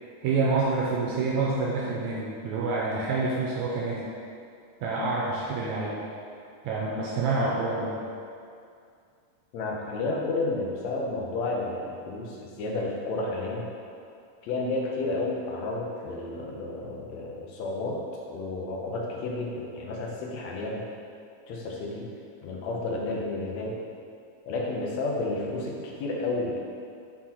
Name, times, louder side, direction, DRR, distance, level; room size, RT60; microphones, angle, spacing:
voice 1, 0.2-4.0 4.8-6.0 6.6-8.0, right 3 dB, 75° right, -4 dB, 1.9 m, -27 dB
voice 2, 9.5-13.7 14.4-18.0 18.3-20.8 21.5-22.1 22.4-23.8 24.5-26.6, left 2 dB, 70° left, -2 dB, 1.9 m, -31 dB
5.8 x 4.5 x 4.2 m, 2.4 s
omnidirectional pair, 3.6 m